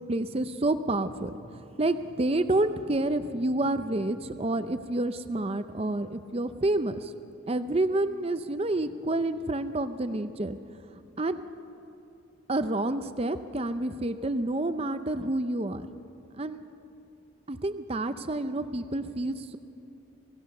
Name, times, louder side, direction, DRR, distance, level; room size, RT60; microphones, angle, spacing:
voice 1, 0.1-7.1 7.5-10.6 11.2-11.4 12.5-15.9 16.4-16.6 17.5-19.6, right 2 dB, 30° right, 10 dB, 0.6 m, -29 dB
27.5 x 16.0 x 6.7 m, 2.8 s
head